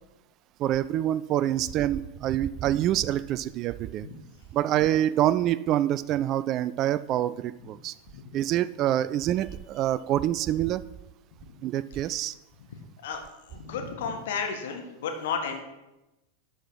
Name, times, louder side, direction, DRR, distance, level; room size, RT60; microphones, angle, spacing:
voice 1, 0.6-4.1 4.5-7.9 8.3-10.8 11.6-12.3, right 12 dB, 35° right, 17 dB, 0.3 m, -26 dB
voice 2, 13.5-15.6, left 6 dB, 55° left, 4 dB, 1.5 m, -32 dB
11.5 x 5.8 x 4.5 m, 0.96 s
figure-of-eight pair, 90°, 0 cm